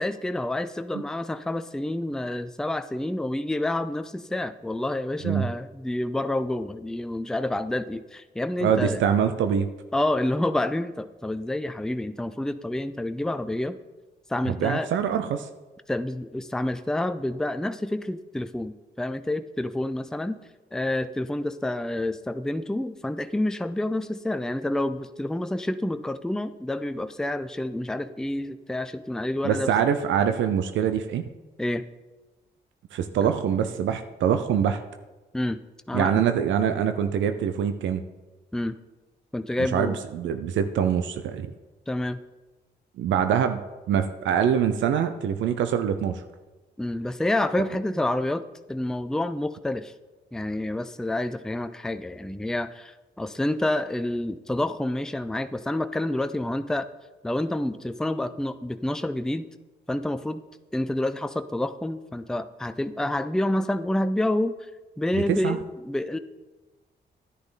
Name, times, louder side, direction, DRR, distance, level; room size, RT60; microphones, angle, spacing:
voice 1, 0.0-9.0 9.9-13.8 14.3-14.9 15.9-20.4 20.7-29.7 31.6-31.8 35.3-35.6 35.9-36.2 38.5-38.8 39.3-40.0 41.9-42.2 46.8-48.4 48.7-49.9 50.3-56.9 57.2-59.5 59.9-60.4 60.7-64.7 65.0-66.2, left 1 dB, 5° left, 10 dB, 0.5 m, -28 dB
voice 2, 8.6-9.7 14.5-15.5 29.4-31.2 32.9-34.8 35.9-38.0 39.7-41.5 43.0-43.6 43.9-46.2 65.1-65.6, right 8 dB, 85° right, 9 dB, 0.6 m, -24 dB
10.5 x 9.3 x 3.9 m, 1.2 s
cardioid pair, 60°, 19 cm